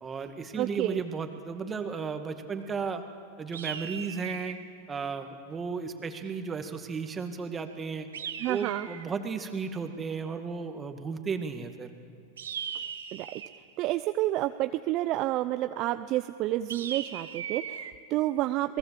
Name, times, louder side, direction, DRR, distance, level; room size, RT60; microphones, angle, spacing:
voice 1, 0.0-3.0 3.4-4.6 4.9-8.1 8.5-11.9, right 5 dB, 20° right, 6 dB, 2.0 m, -34 dB
voice 2, 0.6-1.0 8.4-8.9 13.1-13.3 13.8-18.8, right 15 dB, 45° right, 10 dB, 0.6 m, -29 dB
sound 1, 3.5-4.7 8.1-9.2 12.4-13.6 16.7-17.9, right 8 dB, 80° right, 1.3 m, -38 dB
29.0 x 19.5 x 7.6 m, 2.3 s
hypercardioid pair, 100°, 0 cm